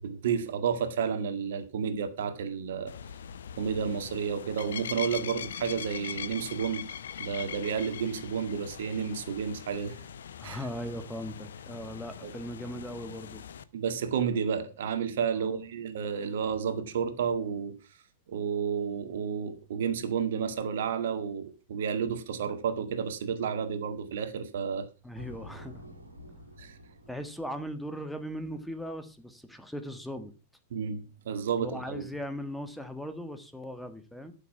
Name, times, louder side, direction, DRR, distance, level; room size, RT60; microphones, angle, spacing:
voice 1, 0.0-2.9 3.6-6.9 7.2-10.0 10.4-10.6 12.2-12.3 13.7-17.7 18.3-24.9 26.6-26.8 30.7-32.0, right 7 dB, 60° right, 1.8 m, -31 dB
sound 1, 2.9-13.6, left 8 dB, 65° left, 0.8 m, -42 dB
voice 2, 10.4-13.4 15.4-15.6 25.0-25.8 27.1-30.3 31.5-34.3, equal, ahead, 1.4 m, -39 dB
sound 2, 25.1-28.9, equal, 80° right, 2.3 m, -50 dB
13.0 x 7.1 x 5.8 m
figure-of-eight pair, 90°, 0 cm